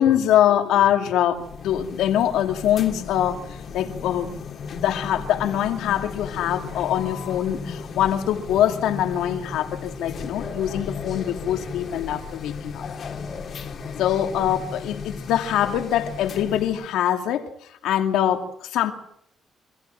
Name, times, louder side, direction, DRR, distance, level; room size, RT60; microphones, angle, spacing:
voice 1, 0.0-4.3 4.7-12.8 14.0-18.9, left 11 dB, 90° left, 5 dB, 2.4 m, -23 dB
sound 1, 1.3-16.9, left 5 dB, 55° left, 2.6 m, -35 dB
24.5 x 15.0 x 7.5 m, 0.69 s
cardioid pair, 90°, 0 cm